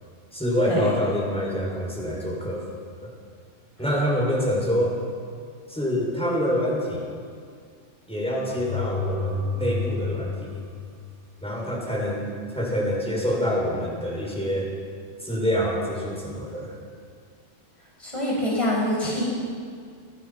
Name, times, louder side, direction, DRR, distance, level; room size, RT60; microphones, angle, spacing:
voice 1, 0.3-2.6 3.0-3.1 3.8-5.0 5.7-7.1 8.1-10.6 11.4-14.7 15.2-16.7, equal, 5° left, -3 dB, 6.7 m, -26 dB
sound 1, 8.5-11.4, left 3 dB, 75° left, 3.0 m, -30 dB
voice 2, 18.0-19.3, left 1 dB, 25° left, -5 dB, 6.7 m, -25 dB
29.0 x 20.0 x 6.0 m, 2.1 s
omnidirectional pair, 1.3 m